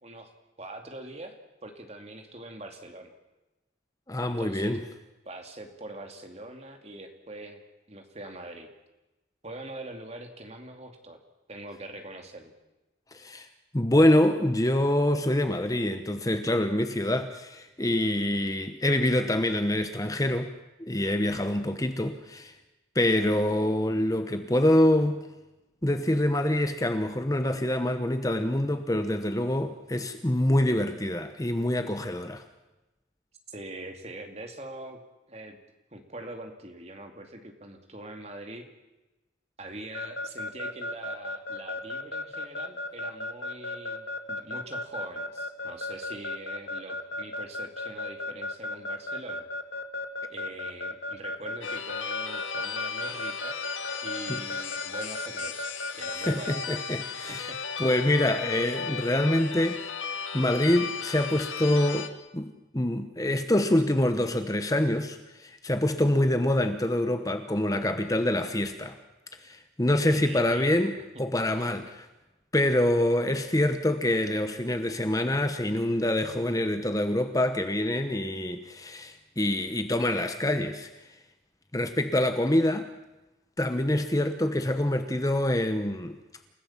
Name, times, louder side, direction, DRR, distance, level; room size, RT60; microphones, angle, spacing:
voice 1, 0.0-1.4 1.6-3.1 4.2-4.8 5.2-7.6 7.9-8.7 9.4-11.2 11.5-12.5 33.5-35.0 35.3-35.6 35.9-38.6 39.6-49.5 50.3-53.6 54.0-56.6 57.3-57.6 70.1-70.7, right 1 dB, 35° right, 4 dB, 2.6 m, -43 dB
voice 2, 4.1-4.8 13.1-13.5 13.7-20.5 20.8-22.6 22.9-25.2 25.8-32.4 54.3-54.4 56.2-57.5 57.8-59.8 60.3-69.0 69.4-72.1 72.5-80.9 81.7-82.9 83.6-86.2, left 1 dB, 20° left, 8 dB, 1.0 m, -26 dB
Keyboard (musical) / Alarm, 39.9-56.6, left 2 dB, 55° left, 1.9 m, -34 dB
sound 1, 51.6-62.1, left 6 dB, 85° left, 1.8 m, -35 dB
28.5 x 16.0 x 7.3 m, 1.0 s
head